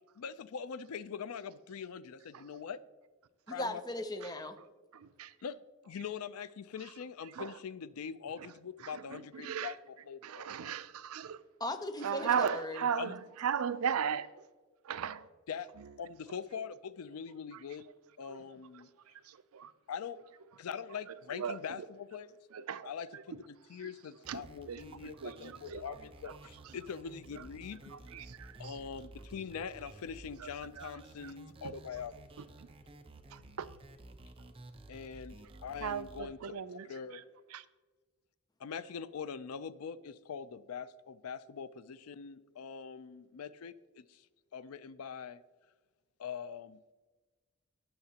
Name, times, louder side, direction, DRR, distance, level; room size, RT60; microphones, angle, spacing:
voice 1, 0.2-2.8 3.5-3.8 5.4-5.6 5.9-10.7 12.9-13.1 15.5-15.7 16.0-17.9 18.2-18.9 19.9-20.2 20.6-22.3 22.8-27.8 28.6-32.2 34.9-37.2 38.6-44.3 44.5-45.4 46.2-46.9, left 6 dB, 90° left, 0.4 m, -43 dB
voice 2, 3.5-4.6 11.6-12.9, left 1 dB, 20° left, 0.6 m, -38 dB
voice 3, 4.9-5.3 7.4-7.5 9.1-9.7 10.2-11.4 12.0-14.3 14.9-15.3 18.3-18.4 19.3-19.7 21.3-21.6 22.5-22.9 23.3-23.4 24.3-25.9 28.1-28.7 30.4-30.5 30.8-30.9 32.6-32.7 33.3-33.7 35.8-37.2 37.5-37.6, right 7 dB, 85° right, 0.5 m, -36 dB
sound 1, 24.2-36.2, right 2 dB, 25° right, 0.7 m, -53 dB
16.5 x 6.6 x 2.9 m
head